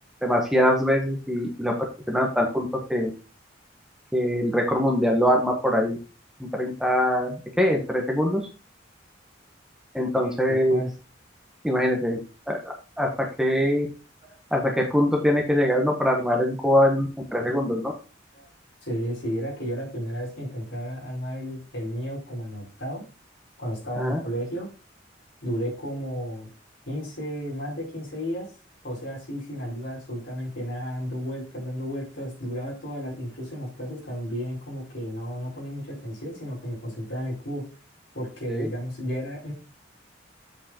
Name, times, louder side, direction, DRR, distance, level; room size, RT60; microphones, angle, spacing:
voice 1, 0.2-1.7 2.1-3.1 4.1-6.0 6.4-8.5 9.9-10.8 11.6-12.2 12.5-13.1 13.4-13.9 14.5-17.9 24.0-24.2 38.5-38.7, equal, 5° right, 1 dB, 1.2 m, -23 dB
voice 2, 10.2-10.9 18.3-18.5 18.8-23.0 23.6-24.7 25.4-26.5 26.8-28.5 28.8-37.6 38.1-39.5, equal, 70° left, -4 dB, 4.9 m, -33 dB
7.6 x 5.4 x 4.3 m, 0.33 s
head